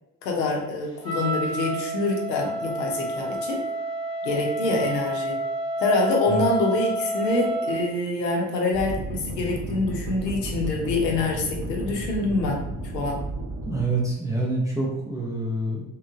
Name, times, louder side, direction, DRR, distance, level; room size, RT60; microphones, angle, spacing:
voice 1, 0.2-3.6 4.2-5.4 5.8-12.6 12.9-13.2, left 2 dB, 75° left, 0 dB, 0.7 m, -25 dB
Wind instrument woodwind instrument, 1.0-7.8, right 1 dB, 85° right, 0.7 m, -29 dB
sound 1, 8.7-13.8, right 1 dB, 30° right, 0.7 m, -33 dB
voice 2, 13.6-15.9, right 2 dB, 5° right, -4 dB, 0.4 m, -26 dB
2.9 x 2.1 x 2.4 m, 0.86 s
figure-of-eight pair, 45°, 49 cm